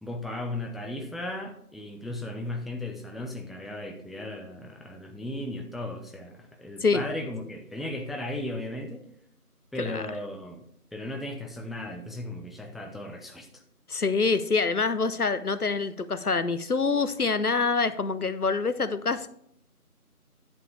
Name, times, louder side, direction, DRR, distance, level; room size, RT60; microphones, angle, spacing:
voice 1, 0.0-9.0 9.7-10.6 10.9-13.6, left 1 dB, ahead, 3 dB, 0.6 m, -36 dB
voice 2, 13.9-19.3, left 4 dB, 75° left, 13 dB, 0.8 m, -26 dB
10.5 x 7.1 x 3.3 m, 0.69 s
figure-of-eight pair, 175°, 46 cm